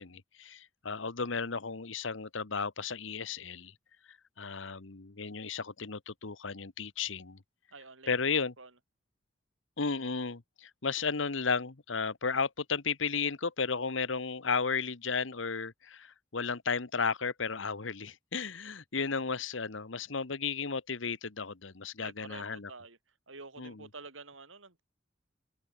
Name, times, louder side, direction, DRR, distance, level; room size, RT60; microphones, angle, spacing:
voice 1, 0.0-3.7 4.4-7.4 8.1-8.5 9.8-22.7 23.6-23.9, left 5 dB, 70° left, 1.2 m, -34 dB
voice 2, 7.7-8.1 8.6-8.7 22.0-23.0 23.3-24.8, right 3 dB, 85° right, 5.0 m, -48 dB
open air
head